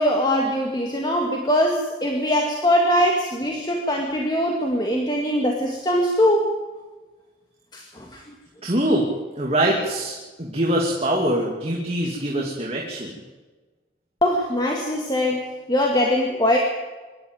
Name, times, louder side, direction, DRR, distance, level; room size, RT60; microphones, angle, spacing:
voice 1, 0.0-6.5 7.7-8.2 14.2-16.6, equal, 25° left, 1 dB, 2.3 m, -22 dB
voice 2, 8.6-9.1 9.4-13.2, right 1 dB, 35° right, -1 dB, 2.7 m, -23 dB
24.5 x 12.5 x 9.3 m, 1.3 s
head